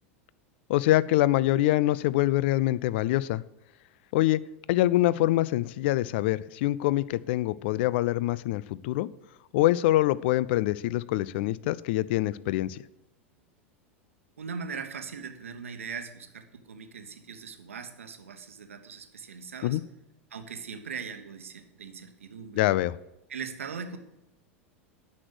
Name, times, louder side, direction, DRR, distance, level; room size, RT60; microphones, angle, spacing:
voice 1, 0.7-3.4 4.1-4.4 4.7-9.1 9.5-12.8 19.6-19.8 22.6-23.0, left 16 dB, 55° left, 19 dB, 0.4 m, -25 dB
voice 2, 14.4-19.8 20.3-22.6 23.3-24.0, right 6 dB, 75° right, 8 dB, 1.0 m, -40 dB
9.8 x 6.3 x 6.1 m, 0.92 s
figure-of-eight pair, 85°, 7 cm